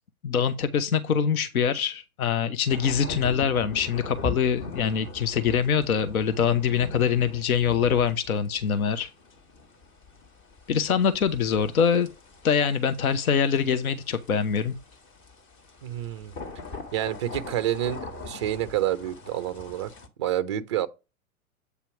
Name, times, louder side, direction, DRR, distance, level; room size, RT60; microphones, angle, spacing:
voice 1, 0.2-9.1 10.7-12.1 12.4-14.7, left 7 dB, 75° left, 0.8 m, -24 dB
sound 1, 2.7-20.1, left 3 dB, 35° left, 1.4 m, -41 dB
voice 2, 15.8-16.3 16.9-19.9 20.2-20.9, right 12 dB, 25° right, 0.3 m, -28 dB
8.2 x 2.9 x 5.7 m
hypercardioid pair, 115°, 43 cm